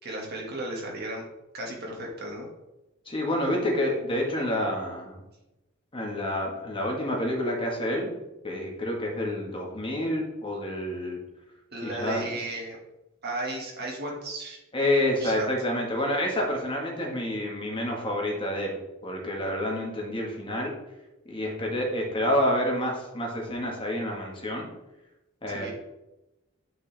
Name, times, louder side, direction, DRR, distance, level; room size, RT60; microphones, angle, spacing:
voice 1, 0.0-1.3 1.5-2.5 11.7-12.8 13.2-14.6 15.2-15.5 25.5-25.7, right 1 dB, 55° right, -2 dB, 1.9 m, -34 dB
voice 2, 3.0-5.2 5.9-8.1 8.4-11.2 11.8-12.3 14.7-20.7 21.3-24.7 25.4-25.7, left 1 dB, 25° left, -1 dB, 1.5 m, -28 dB
8.7 x 4.7 x 3.4 m, 0.99 s
head